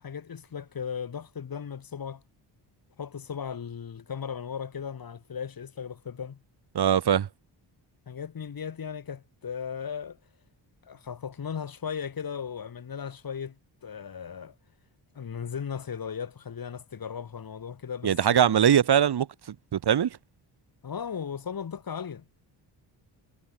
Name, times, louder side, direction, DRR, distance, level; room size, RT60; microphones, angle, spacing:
voice 1, 0.0-2.2 3.0-6.4 8.1-10.2 10.9-13.6 13.8-14.5 15.1-18.7 20.8-22.3, left 7 dB, 50° left, 4.8 m, -36 dB
voice 2, 6.7-7.3 18.0-19.3 19.7-20.2, right 9 dB, 60° right, 2.4 m, -21 dB
cardioid pair, 95°, 44 cm